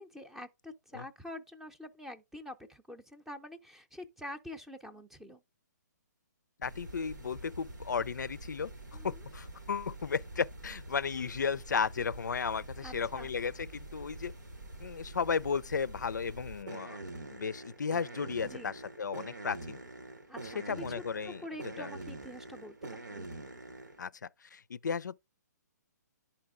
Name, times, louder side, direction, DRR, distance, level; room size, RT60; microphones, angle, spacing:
voice 1, 0.0-5.4 8.9-9.2 12.8-13.3 18.4-18.7 20.3-20.8 21.3-23.3, left 1 dB, 5° right, 0.6 m, -46 dB
voice 2, 6.6-8.7 9.0-14.3 14.8-17.0 17.3-19.8 20.7-21.4 21.8-21.9 24.0-25.2, left 6 dB, 80° left, 0.4 m, -34 dB
sound 1, 6.6-24.0, right 2 dB, 90° right, 1.5 m, -46 dB
10.5 x 4.3 x 3.6 m
hypercardioid pair, 135°, 10 cm